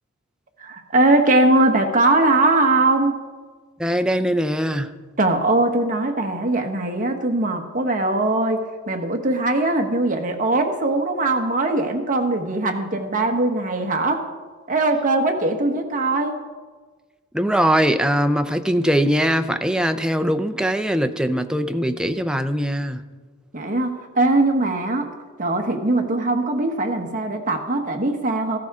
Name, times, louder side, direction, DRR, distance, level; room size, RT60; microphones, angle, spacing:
voice 1, 0.6-3.2 5.2-14.3 14.7-16.4 23.5-25.1 25.4-28.6, right 2 dB, 40° right, 4 dB, 1.2 m, -21 dB
voice 2, 3.8-4.9 17.3-23.0, equal, 5° right, 8 dB, 0.5 m, -21 dB
15.5 x 13.0 x 3.6 m, 1.4 s
head